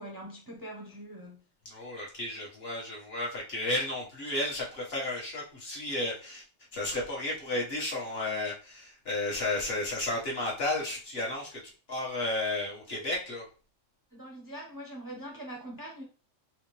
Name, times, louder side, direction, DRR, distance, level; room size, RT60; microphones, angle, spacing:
voice 1, 0.0-1.4 14.1-16.0, right 1 dB, 25° right, 0.5 m, -43 dB
voice 2, 1.6-6.4 6.7-11.6 11.9-13.4, left 2 dB, 50° left, 1.4 m, -33 dB
4.1 x 2.5 x 3.1 m
omnidirectional pair, 1.4 m